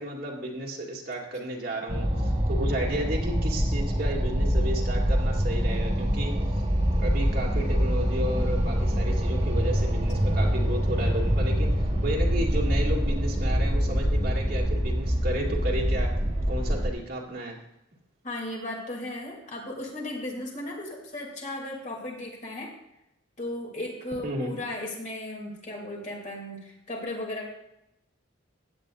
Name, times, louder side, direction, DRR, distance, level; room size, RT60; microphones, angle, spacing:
voice 1, 0.0-6.3 7.0-11.7 12.0-16.1 16.5-17.6 24.2-24.6, right 1 dB, 55° right, -1 dB, 2.3 m, -33 dB
sound 1, 1.9-16.9, equal, 35° right, 2.0 m, -25 dB
voice 2, 18.2-22.7 23.4-27.5, left 1 dB, 40° left, -2 dB, 2.8 m, -36 dB
16.0 x 9.4 x 2.6 m, 0.84 s
head